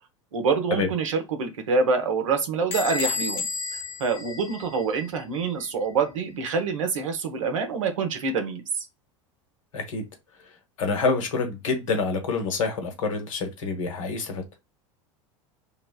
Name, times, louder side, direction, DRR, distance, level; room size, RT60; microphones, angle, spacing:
voice 1, 0.3-3.5 4.0-8.9, right 4 dB, 80° right, 0.8 m, -26 dB
Bell / Door, 2.7-5.2, left 4 dB, 30° left, 1.0 m, -32 dB
voice 2, 9.7-10.0 10.8-14.4, left 4 dB, 80° left, 0.9 m, -27 dB
3.0 x 2.0 x 2.2 m
hypercardioid pair, 85°, 16 cm